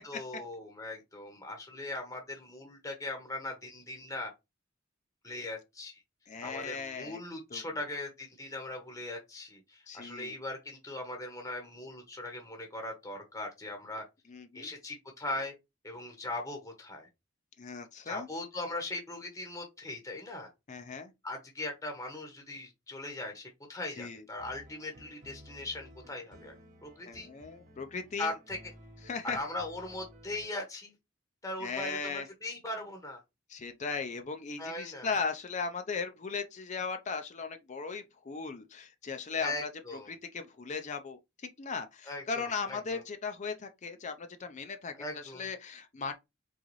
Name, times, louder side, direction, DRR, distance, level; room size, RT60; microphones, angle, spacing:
voice 1, 0.0-4.3 5.2-6.0 6.4-14.0 14.5-15.5 15.8-17.1 18.0-20.5 21.2-26.5 26.8-27.3 28.2-28.6 29.2-30.9 31.4-33.2 34.6-35.1 39.4-40.1 42.1-43.0 45.0-45.5, left 2 dB, 15° left, 0.9 m, -39 dB
voice 2, 6.3-7.2 7.5-7.6 9.9-10.4 14.3-14.7 17.6-18.3 20.7-21.1 24.0-24.2 27.1-28.3 29.1-29.4 31.6-32.3 33.5-39.7 40.1-46.1, left 5 dB, 35° left, 0.5 m, -37 dB
sound 1, 24.4-30.6, equal, 40° right, 1.0 m, -55 dB
3.9 x 3.8 x 3.1 m
head